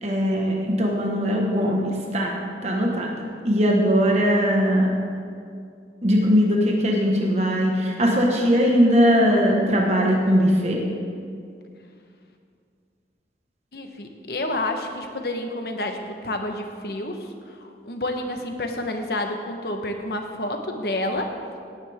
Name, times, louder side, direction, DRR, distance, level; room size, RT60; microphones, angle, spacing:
voice 1, 0.0-2.4 2.6-3.1 3.4-4.9 6.0-10.8, equal, 35° right, -1 dB, 1.4 m, -20 dB
voice 2, 13.7-21.3, left 1 dB, 60° left, 4 dB, 1.2 m, -29 dB
18.0 x 9.7 x 3.6 m, 2.3 s
head